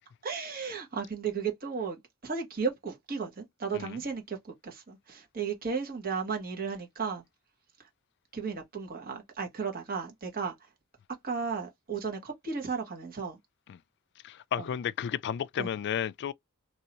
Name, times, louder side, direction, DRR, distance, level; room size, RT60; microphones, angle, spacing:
voice 1, 0.2-7.2 8.3-10.5 11.2-13.4 14.6-14.7 15.6-15.7, right 5 dB, 40° right, 1.5 m, -34 dB
voice 2, 14.2-16.3, left 9 dB, 50° left, 0.3 m, -33 dB
2.9 x 2.7 x 2.9 m
head